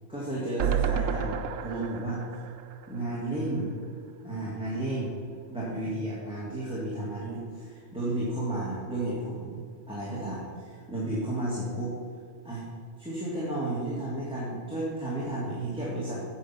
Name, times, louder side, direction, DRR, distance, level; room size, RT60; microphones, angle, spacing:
voice 1, 0.1-2.2 2.9-3.7 4.2-5.2 5.5-11.9 12.4-12.6 13.0-16.2, right 1 dB, 5° right, -8 dB, 1.9 m, -32 dB
sound 1, 0.6-3.8 4.2-4.3 4.5-4.6, right 8 dB, 75° right, 1.0 m, -31 dB
8.5 x 7.6 x 5.7 m, 2.2 s
omnidirectional pair, 1.4 m